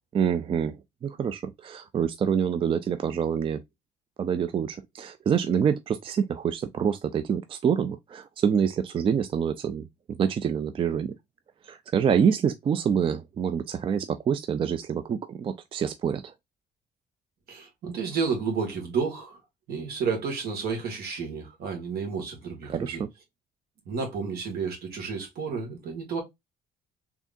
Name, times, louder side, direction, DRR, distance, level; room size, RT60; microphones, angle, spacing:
voice 1, 0.1-0.8 1.0-3.6 4.2-9.9 10.2-11.1 11.7-16.3 22.7-23.1, right 7 dB, 30° right, 0.3 m, -26 dB
voice 2, 17.5-19.4 19.7-23.0 23.9-26.2, right 5 dB, 65° right, 1.9 m, -31 dB
3.6 x 3.5 x 2.5 m
cardioid pair, 110°, 17 cm